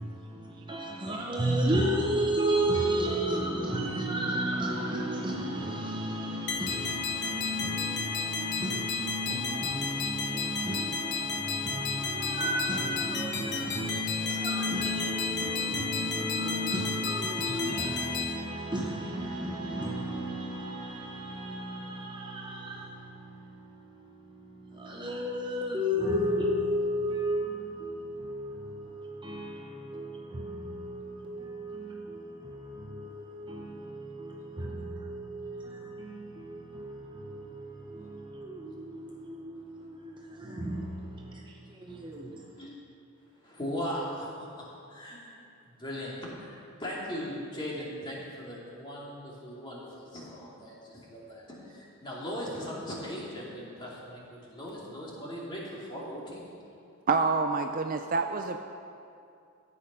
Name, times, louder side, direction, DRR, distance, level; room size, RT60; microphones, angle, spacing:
voice 1, 0.0-42.6, right 1 dB, 20° right, -1 dB, 0.8 m, -33 dB
sound 1, 6.5-18.3, left 6 dB, 50° left, 1.1 m, -33 dB
voice 2, 43.4-45.3 45.8-56.4, equal, 20° left, -5 dB, 2.5 m, -39 dB
voice 3, 57.1-58.6, right 4 dB, 40° right, 6 dB, 0.4 m, -27 dB
14.0 x 8.7 x 5.5 m, 2.5 s
head